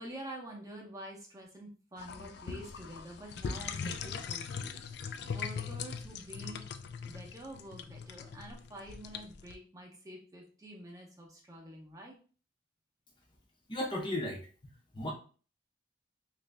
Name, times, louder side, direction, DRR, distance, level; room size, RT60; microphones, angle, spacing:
voice 1, 0.0-4.8 5.3-6.6 7.0-12.2, right 1 dB, 20° right, 0 dB, 0.7 m, -47 dB
sound 1, 2.0-9.5, left 6 dB, 60° left, 0.3 m, -40 dB
voice 2, 13.7-14.5 14.9-15.1, left 1 dB, 25° left, 0 dB, 0.6 m, -34 dB
3.0 x 2.5 x 3.2 m, 0.38 s
head